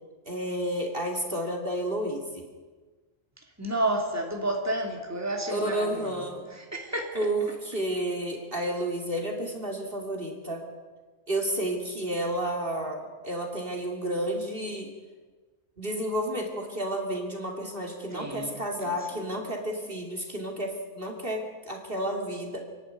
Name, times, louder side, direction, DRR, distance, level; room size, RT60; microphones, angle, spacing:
voice 1, 0.2-2.4 5.5-6.4 7.1-10.6 11.3-14.9 15.8-22.6, right 1 dB, 45° right, 1 dB, 2.8 m, -31 dB
voice 2, 3.6-6.2 6.5-7.3 18.1-19.2, right 1 dB, 10° right, 1 dB, 2.9 m, -31 dB
27.0 x 11.5 x 9.4 m, 1.4 s
omnidirectional pair, 1.3 m